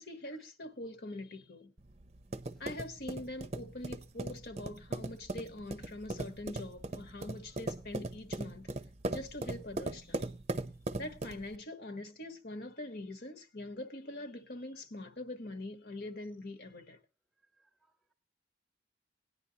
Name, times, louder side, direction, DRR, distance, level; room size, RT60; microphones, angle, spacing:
voice 1, 0.0-1.7 2.6-8.7 9.1-10.3 11.0-17.0, left 1 dB, 60° left, 1.3 m, -43 dB
sound 1, 1.8-11.6, right 2 dB, 35° right, 0.7 m, -39 dB
voice 2, 17.6-18.1, left 2 dB, ahead, 1.2 m, -68 dB
18.0 x 10.0 x 2.9 m
head